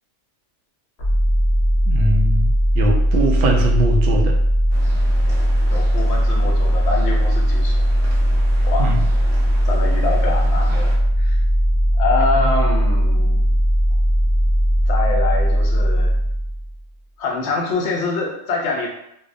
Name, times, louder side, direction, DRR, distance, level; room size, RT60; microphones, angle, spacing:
sound 1, 1.0-16.8, equal, 45° left, 0.5 m, -18 dB
voice 1, 1.9-2.5 2.7-4.4 8.8-9.0 12.4-12.5, right 1 dB, 65° right, 1 dB, 0.7 m, -21 dB
sound 2, 4.7-11.0, left 1 dB, 85° right, 1.0 m, -38 dB
voice 2, 5.7-7.8 8.6-8.9 9.7-11.4 11.9-13.5 14.9-16.1 17.2-18.9, left 3 dB, 70° left, -1 dB, 0.8 m, -25 dB
2.6 x 2.0 x 2.4 m, 0.77 s
omnidirectional pair, 1.3 m